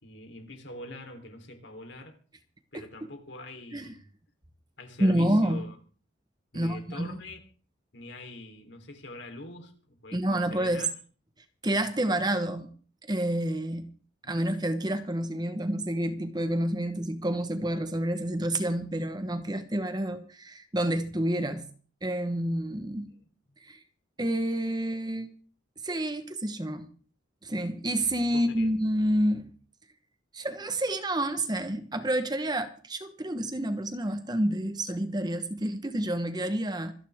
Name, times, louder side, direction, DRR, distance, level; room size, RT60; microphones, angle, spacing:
voice 1, 0.0-2.2 2.7-4.0 4.8-5.8 6.5-7.4 7.9-10.9 14.2-14.4 23.1-23.3 28.3-28.7, left 2 dB, 65° left, 3.6 m, -44 dB
voice 2, 5.0-5.6 6.5-7.2 10.1-10.9 11.6-12.7 13.0-13.9 14.3-21.7 22.0-23.1 23.6-23.8 24.2-25.3 25.8-26.9 27.4-29.5 30.3-36.9, right 1 dB, 20° right, 1.1 m, -29 dB
26.0 x 10.0 x 3.6 m
head